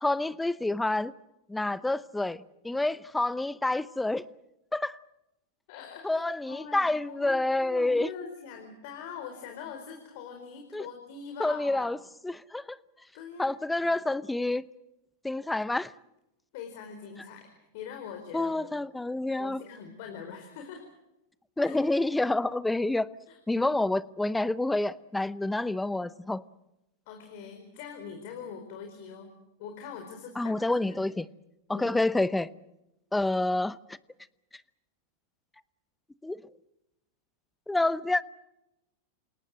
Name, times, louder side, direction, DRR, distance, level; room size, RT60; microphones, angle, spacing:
voice 1, 0.0-1.1 1.5-4.2 4.7-5.0 6.0-8.1 10.7-10.9 11.4-12.0 12.2-12.8 13.4-14.6 15.2-15.9 18.3-19.6 21.6-23.1 23.5-26.4 30.4-31.3 31.7-32.5 33.1-34.0 36.2-36.4 37.7-38.2, left 2 dB, 5° left, 17 dB, 0.8 m, -28 dB
voice 2, 5.7-11.9 13.1-13.6 16.5-18.7 19.4-20.9 21.6-21.8 23.3-23.4 27.1-29.3 29.6-31.1 31.7-32.0, left 6 dB, 60° left, 5 dB, 4.5 m, -43 dB
28.0 x 18.5 x 7.6 m, 0.90 s
hypercardioid pair, 110°, 0 cm